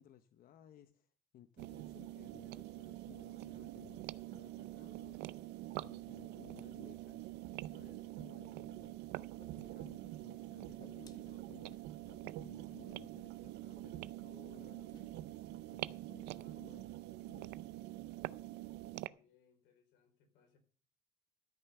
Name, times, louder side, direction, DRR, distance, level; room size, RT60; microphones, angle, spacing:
voice 1, 0.0-5.2 5.8-9.0 9.6-11.8 12.2-17.0 17.2-17.8, left 10 dB, 60° left, 0.7 m, -60 dB
sound 1, 1.6-19.1, right 16 dB, 85° right, 0.5 m, -46 dB
Wind instrument woodwind instrument, 2.7-10.6, right 7 dB, 35° right, 3.5 m, -73 dB
Whoosh swoosh swish, 8.8-8.9 9.2-10.1 10.4-12.3 12.7-13.0 13.2-13.4 13.7-14.3 14.5-15.1, left 3 dB, 25° left, 1.2 m, -63 dB
voice 2, 19.1-20.6, left 7 dB, 90° left, 3.9 m, -71 dB
13.0 x 5.7 x 6.7 m
cardioid pair, 110°, 17 cm